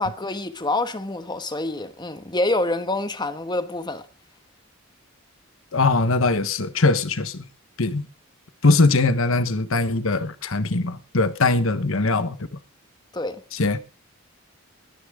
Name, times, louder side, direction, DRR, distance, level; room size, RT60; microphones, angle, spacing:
voice 1, 0.0-4.1 13.1-13.4, left 2 dB, 20° left, 1.2 m, -26 dB
voice 2, 5.7-7.4 7.8-8.1 8.6-12.4 13.5-13.8, left 3 dB, 65° left, 1.2 m, -21 dB
21.0 x 10.0 x 3.7 m
head